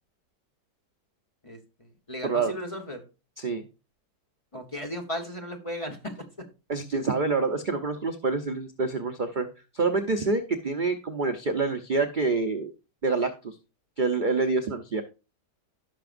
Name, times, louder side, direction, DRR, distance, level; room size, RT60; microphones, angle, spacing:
voice 1, 1.4-3.0 4.5-6.1, left 1 dB, 20° left, 3 dB, 1.0 m, -36 dB
voice 2, 6.7-9.5 9.7-12.7 13.0-13.6 14.0-15.0, right 4 dB, 60° right, 6 dB, 0.5 m, -27 dB
16.5 x 5.9 x 2.5 m, 0.30 s
omnidirectional pair, 1.9 m